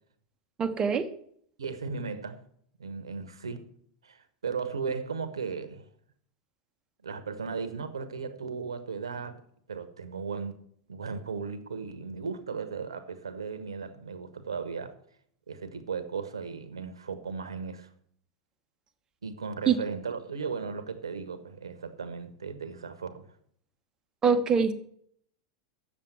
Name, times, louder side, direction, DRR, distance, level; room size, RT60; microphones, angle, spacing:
voice 1, 0.6-1.1 19.7-19.8 24.2-24.7, right 6 dB, 25° right, 1.1 m, -23 dB
voice 2, 1.6-2.4 2.8-3.7 4.0-5.9 7.0-9.4 9.7-10.6 10.9-14.9 15.5-17.9 19.2-23.3, right 5 dB, 85° right, 1.1 m, -36 dB
7.3 x 6.8 x 8.0 m
hypercardioid pair, 100°, 3 cm